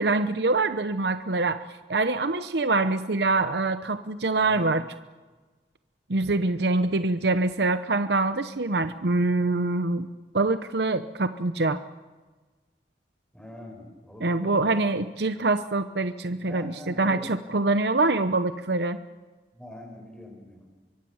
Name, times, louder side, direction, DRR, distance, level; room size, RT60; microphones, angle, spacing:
voice 1, 0.0-4.8 6.1-10.1 10.3-11.8 14.2-19.0, right 3 dB, 70° right, 10 dB, 0.9 m, -25 dB
voice 2, 4.4-4.7 13.3-14.9 16.5-17.3 19.5-20.7, left 1 dB, 5° left, 0 dB, 5.5 m, -43 dB
25.0 x 24.0 x 7.2 m, 1.3 s
head